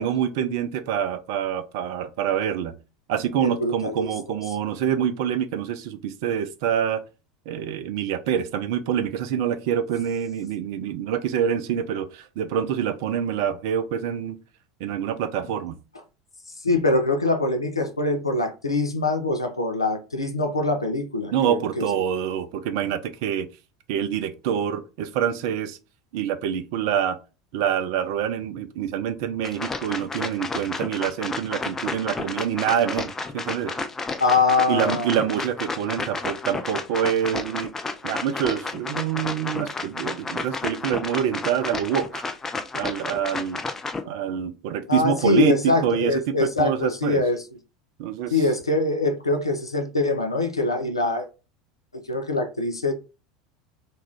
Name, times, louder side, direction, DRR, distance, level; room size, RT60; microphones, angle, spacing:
voice 1, 0.0-2.7 3.1-7.0 7.5-14.4 14.8-15.8 21.3-23.5 23.9-25.8 26.1-27.2 27.5-33.7 34.7-37.7 38.0-42.2 42.7-43.6 44.1-47.2 48.0-48.3, right 9 dB, 55° right, 0.4 m, -26 dB
voice 2, 3.4-4.1 16.6-21.9 34.2-35.2 44.9-47.4 48.3-51.3 51.9-52.9, left 3 dB, 85° left, 0.4 m, -23 dB
sound 1, 29.4-44.0, left 3 dB, 15° left, 0.3 m, -31 dB
2.5 x 2.2 x 3.3 m
figure-of-eight pair, 75°, 3 cm